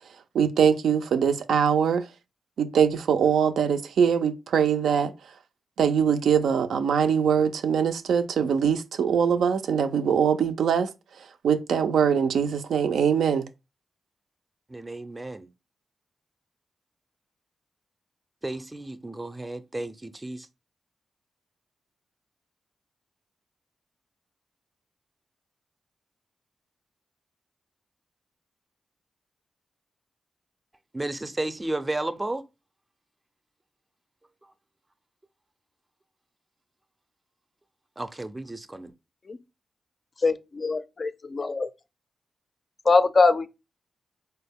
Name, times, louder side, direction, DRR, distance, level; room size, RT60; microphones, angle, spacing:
voice 1, 0.3-2.1 2.6-5.1 5.8-10.9 11.4-13.4, right 7 dB, 90° right, 0.3 m, -22 dB
voice 2, 14.7-15.5 18.4-20.5 30.9-32.4 38.0-38.9, right 2 dB, 20° right, 0.4 m, -33 dB
voice 3, 40.2-41.7 42.9-43.5, left 3 dB, 45° left, 0.3 m, -22 dB
4.0 x 2.1 x 3.5 m
cardioid pair, 70°, 0 cm